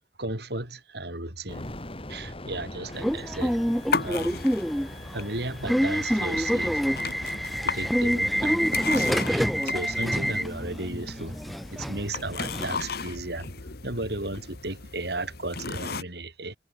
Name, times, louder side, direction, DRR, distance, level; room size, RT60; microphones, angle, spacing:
voice 1, 0.2-1.7 2.1-3.6 4.0-4.5 5.1-6.8 7.6-16.6, right 2 dB, 65° right, 6.9 m, -35 dB
sound 1, 1.5-12.4, left 1 dB, 30° left, 4.0 m, -45 dB
Subway metro underground / Alarm, 2.9-12.8, equal, ahead, 1.6 m, -27 dB
sound 2, 3.4-16.0, left 4 dB, 60° left, 1.6 m, -36 dB
head